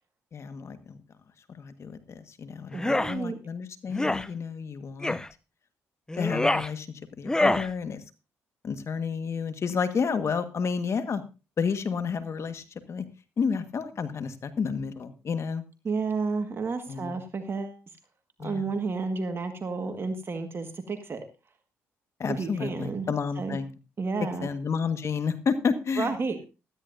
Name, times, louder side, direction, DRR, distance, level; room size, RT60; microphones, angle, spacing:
voice 1, 0.3-1.0 1.5-5.2 6.2-6.9 7.2-8.0 8.6-11.2 11.6-13.0 13.4-15.6 16.9-17.1 18.4-18.7 22.2-23.7 24.4-26.1, left 5 dB, 50° left, 10 dB, 1.5 m, -30 dB
sound 1, 2.7-3.1 3.9-4.3 5.0-5.3 6.1-6.7 7.2-7.7, left 1 dB, 10° left, 0.6 m, -26 dB
voice 2, 2.7-3.4 15.8-17.8 18.4-21.2 22.3-23.6 24.0-24.5 26.0-26.5, right 4 dB, 40° right, 6 dB, 1.7 m, -31 dB
16.0 x 13.0 x 2.7 m, 0.30 s
supercardioid pair, 65°, 6 cm